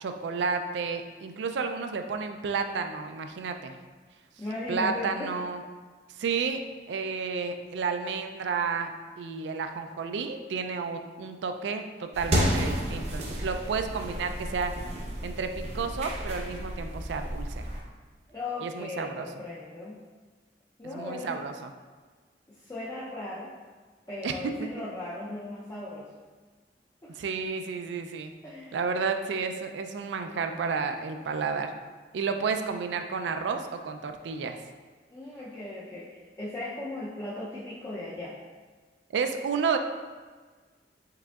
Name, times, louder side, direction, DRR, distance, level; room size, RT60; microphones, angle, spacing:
voice 1, 0.0-3.7 4.7-5.6 6.2-14.7 15.2-17.7 18.6-19.3 20.9-21.7 24.2-24.3 27.1-28.3 28.7-31.7 32.1-34.6 39.1-39.8, right 5 dB, 80° right, 7 dB, 0.3 m, -31 dB
voice 2, 4.4-5.3 18.3-20.0 20.8-21.4 22.5-23.5 24.1-26.1 27.0-27.2 28.4-28.8 32.4-32.5 35.1-38.3, left 2 dB, 20° left, -7 dB, 0.5 m, -37 dB
sound 1, 12.1-17.8, equal, 40° right, 0.6 m, -31 dB
4.8 x 3.5 x 2.3 m, 1.4 s
head